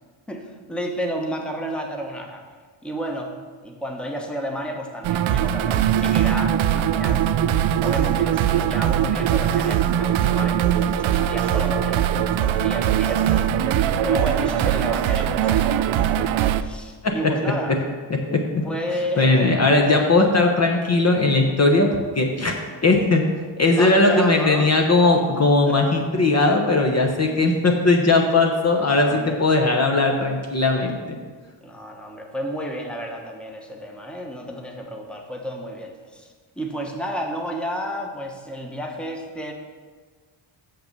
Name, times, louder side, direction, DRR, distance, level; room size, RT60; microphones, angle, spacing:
voice 1, 0.3-2.4 2.8-3.3 3.6-7.2 7.8-13.5 14.0-17.9 18.6-19.5 23.8-24.7 25.7-25.8 28.7-29.4 31.6-36.3 36.6-39.5, equal, ahead, 1 dB, 1.0 m, -31 dB
sound 1, 5.0-16.6, right 10 dB, 75° right, 0.5 m, -21 dB
voice 2, 18.1-18.6 19.2-23.3 23.6-31.2, left 2 dB, 35° left, 2 dB, 0.9 m, -19 dB
6.6 x 5.8 x 6.6 m, 1.5 s
cardioid pair, 100°, 48 cm